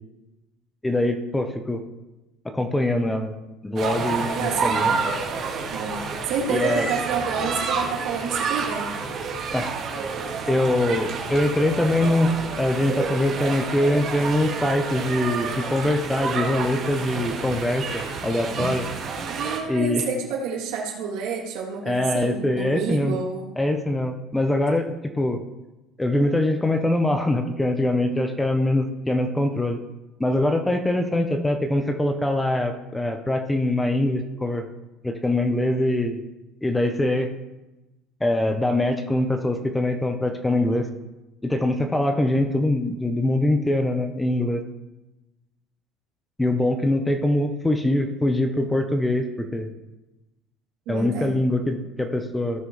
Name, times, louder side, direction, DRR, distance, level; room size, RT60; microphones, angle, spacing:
voice 1, 0.8-1.8 2.4-3.4 3.6-4.9 6.5-6.9 9.5-9.7 10.5-18.9 19.7-20.1 21.8-23.2 23.6-25.4 26.0-29.8 30.2-34.6 35.0-36.2 36.6-37.3 38.2-40.9 41.4-44.6 46.4-49.7 50.9-52.7, left 1 dB, 10° left, 5 dB, 0.9 m, -23 dB
sound 1, 3.8-19.6, right 5 dB, 50° right, 2.1 m, -29 dB
voice 2, 4.3-5.0 5.7-8.9 19.3-23.5 50.9-51.4, right 5 dB, 75° right, -1 dB, 3.0 m, -29 dB
17.0 x 6.2 x 3.3 m, 1.0 s
cardioid pair, 130°, 0 cm